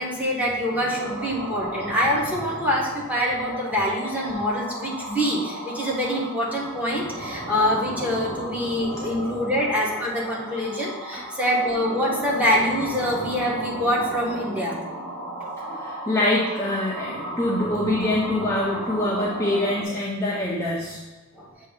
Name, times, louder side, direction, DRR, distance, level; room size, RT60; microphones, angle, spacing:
voice 1, 0.0-14.8 21.3-21.5, equal, 5° right, -4 dB, 1.1 m, -25 dB
sound 1, 0.6-19.8, right 1 dB, 60° right, 1.5 m, -35 dB
voice 2, 15.7-21.0, left 1 dB, 15° left, -6 dB, 0.6 m, -25 dB
6.8 x 2.7 x 5.0 m, 1.2 s
head